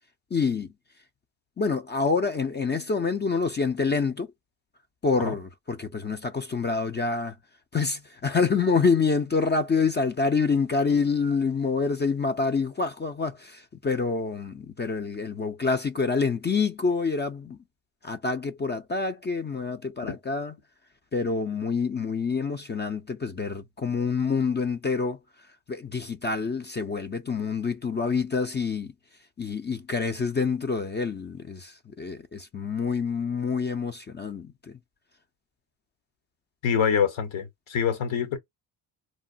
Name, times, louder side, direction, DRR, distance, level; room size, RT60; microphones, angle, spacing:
voice 1, 0.3-0.7 1.6-4.3 5.0-7.3 7.7-17.6 18.0-20.5 21.1-25.2 25.7-28.9 29.4-31.7 32.0-34.5, left 4 dB, 25° left, 0.4 m, -27 dB
voice 2, 36.6-38.4, left 7 dB, 70° left, 1.0 m, -25 dB
3.2 x 2.1 x 2.4 m
supercardioid pair, 60°, 48 cm